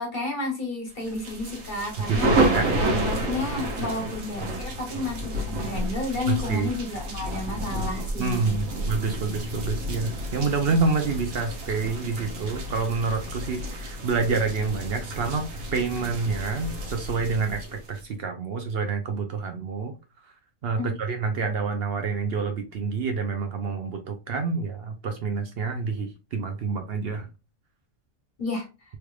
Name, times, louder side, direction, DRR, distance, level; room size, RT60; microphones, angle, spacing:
voice 1, 0.0-2.3 2.7-8.6 20.8-20.9 28.4-28.7, left 2 dB, 40° left, 1.5 m, -31 dB
sound 1, 1.1-18.0, right 1 dB, 80° right, 1.3 m, -30 dB
voice 2, 2.1-2.7 6.3-6.7 8.2-15.4 15.7-19.9 20.6-27.3, right 4 dB, 60° right, 0.7 m, -28 dB
3.3 x 3.2 x 2.3 m
omnidirectional pair, 1.4 m